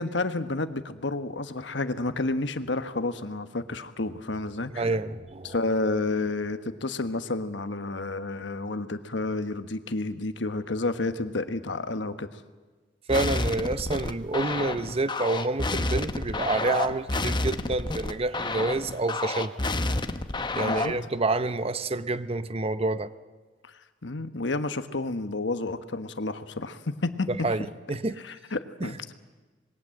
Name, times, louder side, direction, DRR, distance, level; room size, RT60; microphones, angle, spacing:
voice 1, 0.0-4.9 5.4-12.3 20.6-20.9 23.7-27.3 28.2-29.1, left 2 dB, 70° left, 1.3 m, -30 dB
voice 2, 4.8-5.6 13.1-19.5 20.5-23.1 27.3-28.2 28.8-28.9, right 2 dB, 35° right, 0.8 m, -28 dB
sound 1, 13.1-21.0, left 2 dB, 25° left, 1.0 m, -29 dB
26.5 x 21.0 x 7.7 m
head